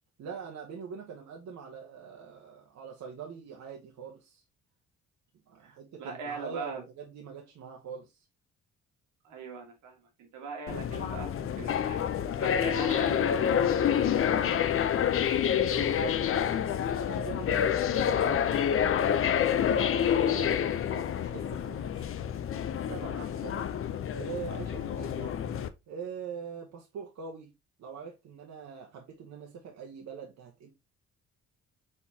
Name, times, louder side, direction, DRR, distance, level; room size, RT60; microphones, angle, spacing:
voice 1, 0.2-4.4 5.5-8.2 15.7-16.2 17.1-18.4 19.1-22.1 22.7-23.6 24.1-25.4 25.9-27.5 27.8-30.7, right 6 dB, 65° right, 1.0 m, -43 dB
voice 2, 5.6-6.8 9.2-11.3 11.6-14.6 20.5-20.6, right 4 dB, 85° right, 1.6 m, -42 dB
sound 1, 10.7-25.7, left 9 dB, 45° left, 0.5 m, -28 dB
4.4 x 3.8 x 2.7 m
cardioid pair, 90°, 30 cm